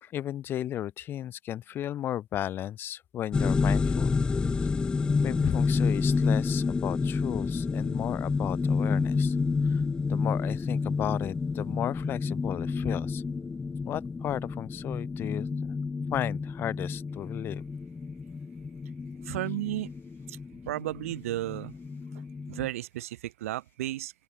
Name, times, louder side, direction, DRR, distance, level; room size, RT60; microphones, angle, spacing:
voice 1, 0.0-4.1 5.2-9.3 9.7-9.8 10.1-13.2 13.8-15.7 16.1-17.6, left 11 dB, 30° left, 2.2 m, -34 dB
sound 1, 3.3-22.7, left 4 dB, 10° left, 1.5 m, -29 dB
voice 2, 19.2-19.9 20.3-20.4 20.7-21.7 22.5-24.1, right 15 dB, 80° right, 7.6 m, -33 dB
open air
supercardioid pair, 155°, 7 cm